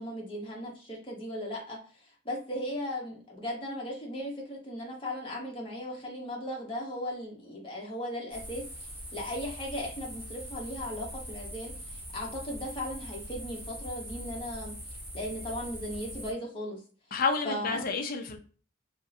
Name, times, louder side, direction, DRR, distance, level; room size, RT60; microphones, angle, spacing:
voice 1, 0.0-1.8 2.2-8.6 9.1-14.8 15.1-16.8 17.4-17.9, equal, 30° left, -1 dB, 1.0 m, -37 dB
sound 1, 8.3-16.3, equal, 10° right, 1.0 m, -42 dB
voice 2, 17.1-18.4, left 4 dB, 50° left, 4 dB, 0.6 m, -29 dB
3.5 x 2.1 x 2.7 m, 0.39 s
head